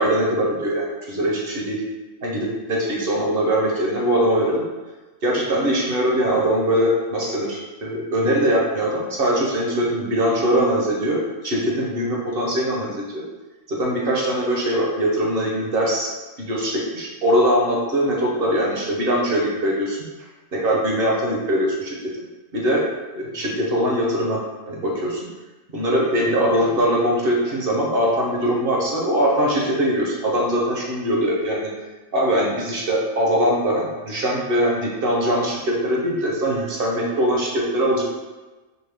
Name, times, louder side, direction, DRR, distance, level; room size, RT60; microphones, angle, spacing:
voice 1, 0.0-1.8 2.2-4.6 5.2-13.2 13.7-16.1 16.4-20.0 20.5-22.2 22.5-22.9 23.1-24.4 24.7-25.2 25.7-31.7 32.1-38.0, equal, 50° right, -3 dB, 0.9 m, -22 dB
4.9 x 2.2 x 3.4 m, 1.2 s
omnidirectional pair, 1.3 m